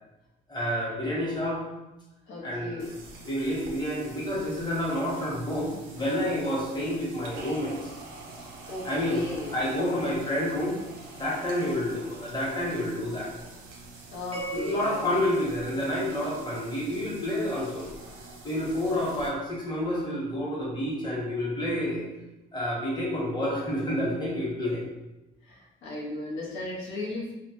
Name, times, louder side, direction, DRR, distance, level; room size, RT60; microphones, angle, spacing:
voice 1, 0.5-1.6 2.4-2.9 3.2-7.9 8.8-9.2 9.5-10.8 11.2-13.3 14.5-17.9 18.4-22.1 22.5-24.8, left 1 dB, 20° left, -5 dB, 0.9 m, -29 dB
voice 2, 2.3-2.9 8.7-9.9 14.1-15.3 25.4-27.3, left 2 dB, 80° left, -4 dB, 0.6 m, -36 dB
sound 1, 2.8-19.3, right 2 dB, 90° right, 0.5 m, -46 dB
sound 2, 14.3-16.7, right 3 dB, 30° right, 0.4 m, -42 dB
2.1 x 2.0 x 2.8 m, 1.0 s
cardioid pair, 90°, 20 cm